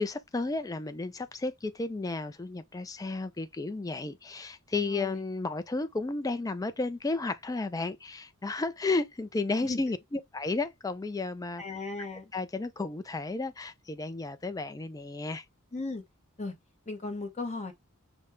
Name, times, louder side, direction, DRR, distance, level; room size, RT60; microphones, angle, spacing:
voice 1, 0.0-11.6 12.3-15.4, left 3 dB, 15° left, 0.4 m, -33 dB
voice 2, 4.9-5.2 9.6-9.8 11.6-12.3 15.7-16.0 16.4-16.6 16.9-17.7, left 3 dB, 30° left, 0.9 m, -36 dB
5.1 x 2.1 x 3.3 m
head